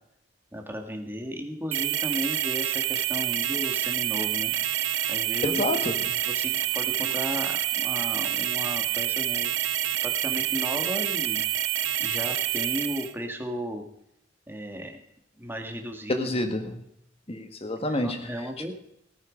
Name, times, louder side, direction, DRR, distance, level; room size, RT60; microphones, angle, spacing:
voice 1, 0.5-4.5 5.1-5.6 6.3-9.5 10.0-11.4 12.0-13.8 14.5-15.0 15.4-16.4 17.8-18.7, equal, 10° right, 3 dB, 1.8 m, -35 dB
sound 1, 1.7-13.1, right 12 dB, 90° right, 0.8 m, -27 dB
voice 2, 5.4-6.2 16.1-16.8 17.3-18.3, left 1 dB, 30° left, 7 dB, 1.6 m, -28 dB
16.5 x 9.3 x 5.2 m, 0.76 s
head